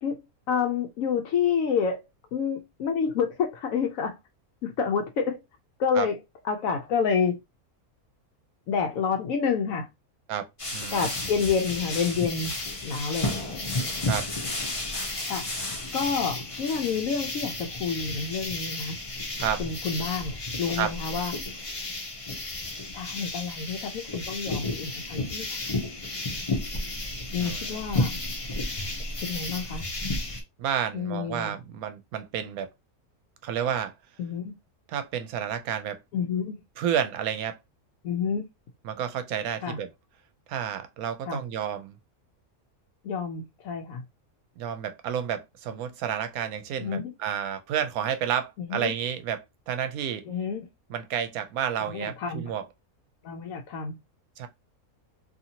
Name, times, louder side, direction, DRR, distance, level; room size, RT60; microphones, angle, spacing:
voice 1, 0.5-4.2 4.6-5.4 5.8-7.4 8.7-9.9 10.9-13.7 15.2-15.5 15.9-19.0 19.6-21.3 22.9-25.5 27.3-28.1 29.2-29.9 30.9-31.6 34.2-34.6 36.1-36.6 38.0-38.5 39.6-39.8 41.3-41.4 43.0-44.0 46.8-47.1 48.6-48.9 50.3-50.7 51.9-52.5 53.2-54.0, left 6 dB, 70° left, 0.9 m, -29 dB
sound 1, 10.6-30.4, left 2 dB, 30° left, 0.7 m, -32 dB
voice 2, 10.7-11.1 14.1-14.3 19.4-19.6 20.8-20.9 27.3-27.8 30.6-32.7 33.4-33.9 34.9-36.0 36.8-37.6 38.8-39.9 40.5-42.0 44.6-50.3 50.9-52.6 54.4-54.5, right 9 dB, 80° right, 1.0 m, -30 dB
2.7 x 2.6 x 2.7 m
omnidirectional pair, 1.5 m